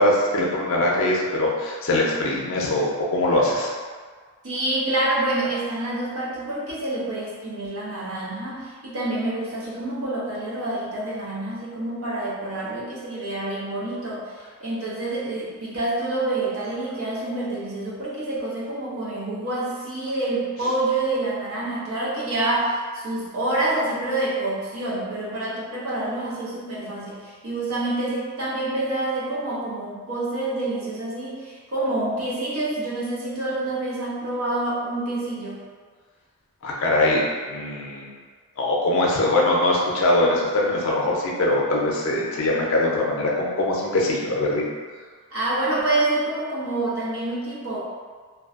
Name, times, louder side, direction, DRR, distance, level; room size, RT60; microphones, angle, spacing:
voice 1, 0.0-3.7 36.6-37.2 37.5-38.1 38.6-44.6, left 1 dB, 60° left, -3 dB, 0.5 m, -22 dB
voice 2, 4.4-35.6 45.3-47.8, right 2 dB, 65° right, -6 dB, 0.7 m, -27 dB
2.5 x 2.2 x 2.3 m, 1.5 s
head